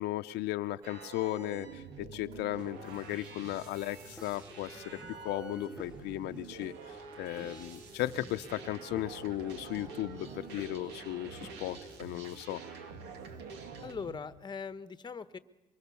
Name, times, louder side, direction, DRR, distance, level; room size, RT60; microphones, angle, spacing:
voice 1, 0.0-12.6, left 15 dB, 85° left, 10 dB, 0.7 m, -36 dB
sound 1, 0.8-14.2, right 5 dB, 90° right, 2.7 m, -47 dB
sound 2, 2.0-8.3, left 4 dB, 65° right, 2.5 m, -57 dB
sound 3, 2.3-12.1, right 1 dB, 5° right, 1.8 m, -53 dB
voice 2, 13.8-15.4, left 5 dB, 25° left, 13 dB, 1.0 m, -41 dB
23.5 x 23.5 x 7.0 m, 1.0 s
cardioid pair, 110°, 17 cm